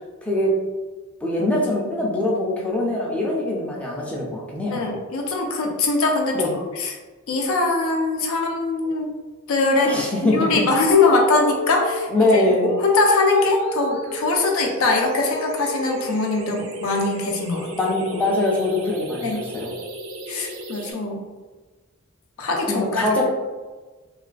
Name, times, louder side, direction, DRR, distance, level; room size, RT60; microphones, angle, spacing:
voice 1, 0.2-0.6 1.2-4.8 6.3-6.5 9.8-10.5 12.1-12.7 17.7-19.7 22.7-23.3, left 1 dB, 5° left, -3 dB, 0.3 m, -22 dB
voice 2, 4.7-6.5 6.7-6.9 7.3-9.1 9.5-9.9 10.2-17.7 19.2-19.4 20.3-21.2 22.4-23.3, left 3 dB, 90° left, 1 dB, 0.5 m, -22 dB
sound 1, 10.9-20.9, equal, 75° right, 0.4 m, -33 dB
2.4 x 2.2 x 2.4 m, 1.3 s
head